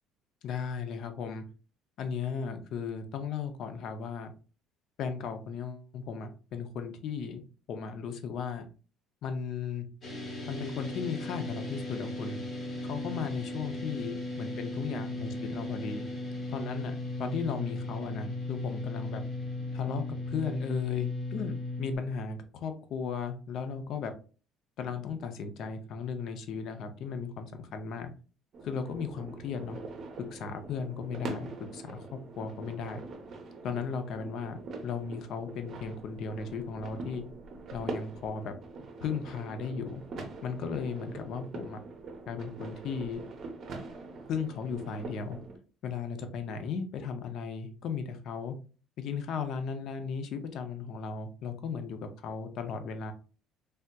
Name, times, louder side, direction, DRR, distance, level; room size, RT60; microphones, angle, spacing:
voice 1, 0.4-1.4 2.0-4.3 5.0-7.4 7.7-8.7 9.2-9.9 10.5-12.4 12.8-16.1 16.5-19.2 19.7-24.1 24.8-28.1 28.6-29.8 30.3-33.0 33.6-34.6 34.8-37.2 37.7-38.5 39.0-40.0 40.4-41.8 42.3-43.2 44.3-45.4 45.8-48.6 49.0-53.1, left 6 dB, 50° left, 8 dB, 0.5 m, -36 dB
sound 1, 10.0-22.0, left 2 dB, 30° left, 0.9 m, -36 dB
sound 2, 28.5-45.6, right 3 dB, 35° right, 0.7 m, -43 dB
3.3 x 2.7 x 2.2 m, 0.37 s
cardioid pair, 165°, 0 cm